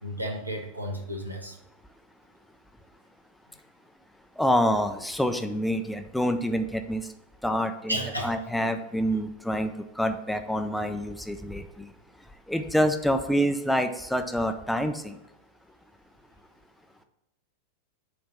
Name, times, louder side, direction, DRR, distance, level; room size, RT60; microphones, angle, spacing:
voice 1, 0.0-1.6 7.9-8.3, equal, 85° right, 3 dB, 1.1 m, -32 dB
voice 2, 4.4-7.1 7.4-8.0 8.2-11.9 12.5-15.2, equal, 5° left, 7 dB, 0.5 m, -27 dB
7.8 x 3.4 x 5.6 m, 0.92 s
figure-of-eight pair, 90°, 0 cm